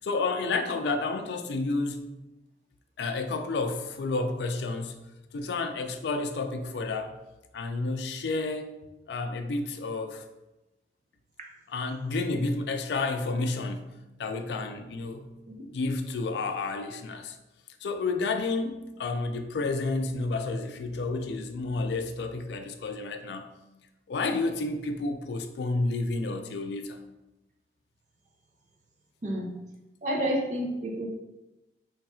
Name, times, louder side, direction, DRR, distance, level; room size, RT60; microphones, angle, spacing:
voice 1, 0.0-2.0 3.0-4.9 5.3-7.2 7.5-8.7 9.1-10.2 11.7-13.9 14.2-15.3 15.7-17.4 17.8-23.5 24.1-27.0, left 3 dB, 75° left, 6 dB, 0.4 m, -30 dB
voice 2, 30.0-31.1, right 1 dB, 40° right, 0 dB, 0.5 m, -29 dB
3.1 x 2.3 x 4.2 m, 1.0 s
head